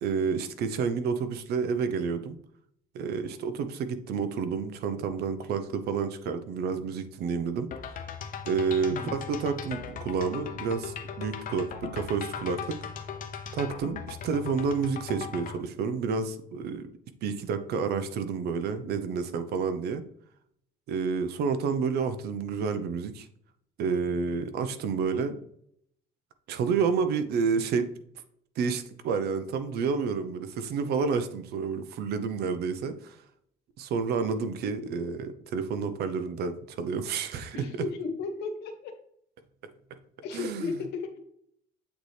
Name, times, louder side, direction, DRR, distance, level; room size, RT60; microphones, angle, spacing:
voice 1, 0.0-2.4 2.9-8.0 8.5-12.8 13.5-16.9 17.2-20.0 20.9-23.3 23.8-25.3 26.5-27.9 28.6-33.2 33.8-37.9 40.3-40.8, right 5 dB, 70° right, 11 dB, 0.7 m, -30 dB
sound 1, 7.7-15.6, left 7 dB, 55° left, 0.8 m, -38 dB
voice 2, 37.5-38.9 40.2-41.1, left 4 dB, 80° left, 6 dB, 1.2 m, -34 dB
8.0 x 4.1 x 3.3 m, 0.69 s
cardioid pair, 110°, 17 cm